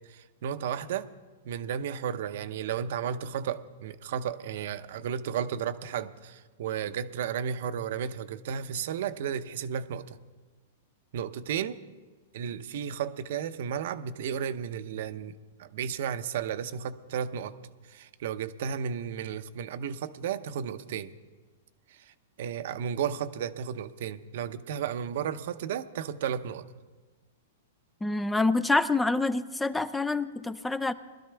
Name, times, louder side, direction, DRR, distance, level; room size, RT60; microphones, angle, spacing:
voice 1, 0.1-1.1 1.4-10.2 11.1-11.8 12.3-17.5 17.9-21.1 21.9-26.7, right 8 dB, 65° right, 11 dB, 0.7 m, -33 dB
voice 2, 28.0-30.9, left 3 dB, 5° left, 15 dB, 0.4 m, -27 dB
21.0 x 12.5 x 3.4 m, 1.3 s
hypercardioid pair, 140°, 0 cm